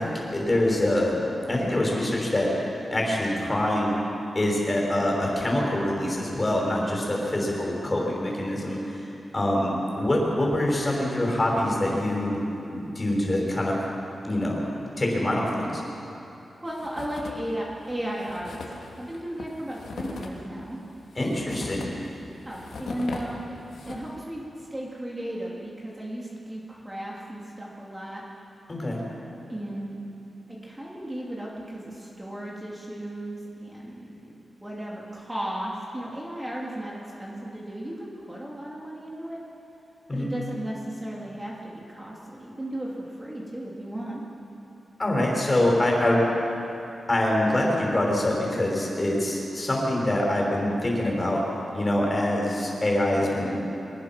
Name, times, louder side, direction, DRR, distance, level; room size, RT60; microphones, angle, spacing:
voice 1, 0.0-2.5 2.9-4.0 4.3-9.1 9.3-12.4 12.7-13.8 14.2-15.8 21.1-21.9 28.7-29.0 40.1-40.3 45.0-46.3 47.1-51.4 51.7-53.6, left 1 dB, 25° left, -2 dB, 5.8 m, -25 dB
voice 2, 16.6-20.8 22.4-23.6 23.9-28.2 29.5-30.0 30.5-39.4 40.1-44.3, right 1 dB, 15° right, -4 dB, 3.2 m, -35 dB
sound 1, 16.7-17.5 17.8-17.9 18.2-24.2, left 3 dB, 85° left, 2.7 m, -39 dB
24.5 x 20.5 x 6.1 m, 2.9 s
wide cardioid pair, 110°, 0 cm